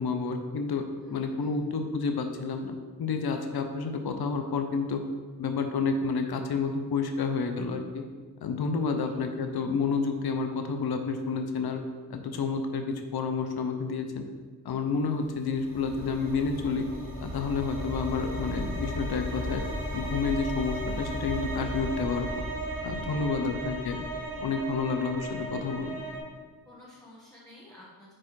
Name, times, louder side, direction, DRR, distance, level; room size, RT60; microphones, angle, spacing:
voice 1, 0.0-5.0 5.4-8.0 8.4-11.8 12.1-14.2 14.6-16.8 17.2-19.6 19.9-22.4 22.8-24.1 24.4-26.0, left 4 dB, 80° left, 5 dB, 0.7 m, -30 dB
voice 2, 1.0-1.5 23.1-23.5 26.6-28.1, left 1 dB, 10° left, -7 dB, 1.2 m, -52 dB
sound 1, 15.4-26.2, equal, 35° right, 1.7 m, -35 dB
6.0 x 4.5 x 4.7 m, 1.5 s
wide cardioid pair, 80°, 38 cm